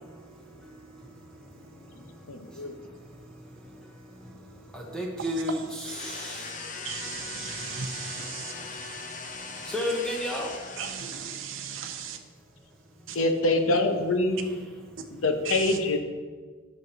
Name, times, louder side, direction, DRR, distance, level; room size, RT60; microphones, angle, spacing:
voice 1, 2.3-2.7 13.1-14.5 15.2-16.0, left 2 dB, 85° left, 6 dB, 1.0 m, -25 dB
voice 2, 4.7-6.5 9.7-10.5, equal, 5° left, -1 dB, 0.9 m, -31 dB
sound 1, 5.8-11.4, left 4 dB, 40° left, 0.9 m, -40 dB
voice 3, 6.8-8.5 10.8-12.2 13.1-13.2 15.5-15.6, right 7 dB, 70° right, 5 dB, 0.6 m, -36 dB
9.5 x 5.8 x 6.1 m, 1.5 s
head